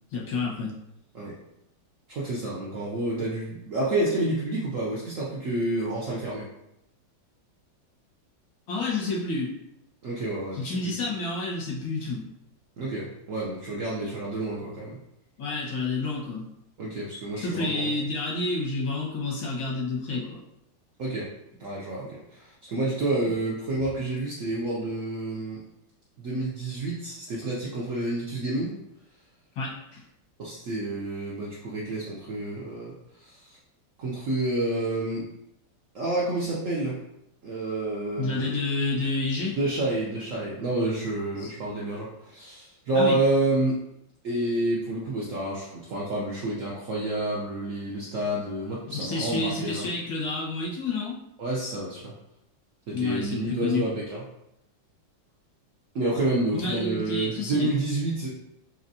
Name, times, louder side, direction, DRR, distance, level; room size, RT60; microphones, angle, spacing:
voice 1, 0.1-0.7 8.7-9.5 10.5-12.3 15.4-16.5 17.4-20.4 29.6-30.0 38.2-39.6 41.3-41.5 43.0-43.2 48.9-51.2 52.9-53.9 56.5-57.7, left 3 dB, 90° left, -4 dB, 1.9 m, -29 dB
voice 2, 2.1-6.5 10.0-11.0 12.8-15.0 16.8-17.9 21.0-21.3 21.6-25.6 26.2-28.8 30.4-32.9 33.2-33.4 34.0-35.3 35.9-37.0 37.4-38.6 39.6-43.8 44.2-49.9 51.4-52.1 52.9-54.2 55.9-58.3, right 2 dB, 65° right, -5 dB, 0.7 m, -29 dB
4.3 x 3.0 x 2.6 m, 0.82 s
omnidirectional pair, 2.1 m